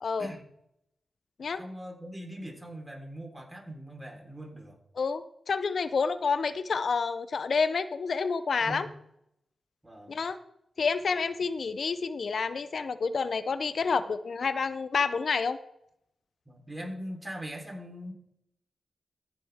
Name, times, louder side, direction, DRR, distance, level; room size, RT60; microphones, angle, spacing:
voice 1, 1.6-4.8 8.6-8.9 9.8-10.2 16.5-18.1, equal, 15° right, 1 dB, 3.9 m, -41 dB
voice 2, 5.0-8.9 10.1-10.4 10.8-15.6, left 5 dB, 70° left, 13 dB, 0.5 m, -29 dB
15.0 x 7.8 x 3.5 m, 0.78 s
cardioid pair, 50°, 0 cm